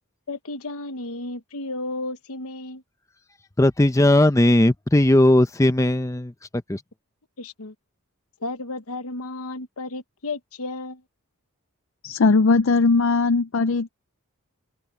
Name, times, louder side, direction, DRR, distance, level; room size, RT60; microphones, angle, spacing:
voice 1, 0.3-2.8 7.4-7.7 8.4-11.0, left 2 dB, 80° left, 1.1 m, -33 dB
voice 2, 3.6-6.3 6.7-6.8, left 1 dB, 15° left, 0.6 m, -17 dB
voice 3, 12.0-13.9, left 4 dB, 60° left, 0.5 m, -19 dB
head